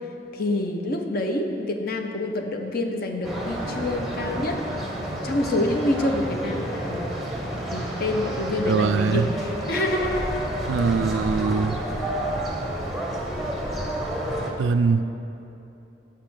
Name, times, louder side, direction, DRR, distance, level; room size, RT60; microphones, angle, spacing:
voice 1, 0.3-4.6 5.2-7.1 7.7-10.4, left 1 dB, 55° left, 4 dB, 0.6 m, -27 dB
sound 1, 3.2-14.5, right 1 dB, ahead, 0.8 m, -30 dB
voice 2, 8.7-9.2 10.7-11.8 14.6-15.1, right 5 dB, 85° right, 11 dB, 0.3 m, -22 dB
6.6 x 5.9 x 6.0 m, 2.9 s
head